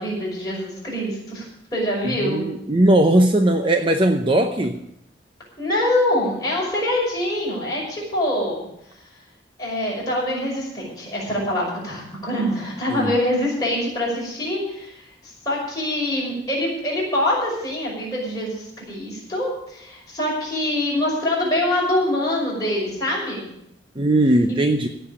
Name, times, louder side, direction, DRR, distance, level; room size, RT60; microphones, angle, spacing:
voice 1, 0.0-1.5 1.7-2.5 5.6-8.6 9.6-15.0 15.4-23.5 24.5-24.6, left 1 dB, 20° left, -5 dB, 6.0 m, -24 dB
voice 2, 2.2-4.8 12.9-13.1 24.0-24.9, right 1 dB, 25° right, 6 dB, 0.7 m, -18 dB
16.5 x 5.6 x 10.0 m, 0.80 s
head